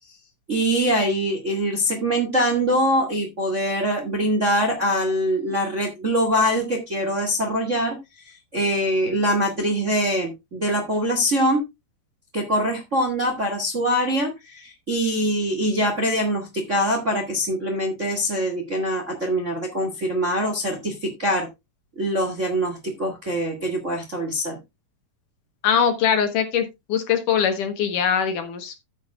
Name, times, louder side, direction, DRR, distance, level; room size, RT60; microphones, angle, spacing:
voice 1, 0.5-8.0 8.2-11.6 12.3-21.5 21.9-24.6, equal, 30° right, 3 dB, 1.3 m, -23 dB
voice 2, 25.6-26.6 26.9-28.8, left 7 dB, 70° left, 7 dB, 2.4 m, -22 dB
14.0 x 7.4 x 2.3 m, 0.22 s
omnidirectional pair, 4.4 m